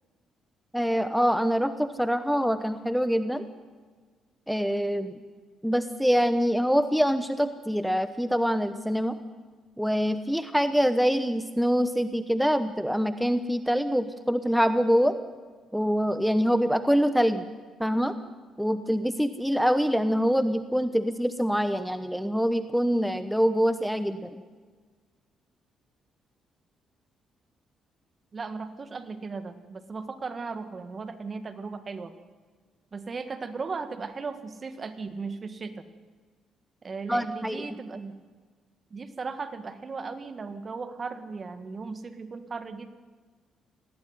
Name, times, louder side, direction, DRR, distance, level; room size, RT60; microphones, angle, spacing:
voice 1, 0.7-3.5 4.5-5.2 5.6-9.2 9.8-15.2 15.7-17.5 17.8-18.2 18.6-24.4 37.1-37.7, equal, ahead, 11 dB, 1.0 m, -25 dB
voice 2, 28.3-32.1 32.9-35.8 36.8-38.1 38.9-42.9, right 4 dB, 35° right, 10 dB, 1.8 m, -36 dB
19.5 x 16.0 x 9.5 m, 1.4 s
cardioid pair, 90°, 0 cm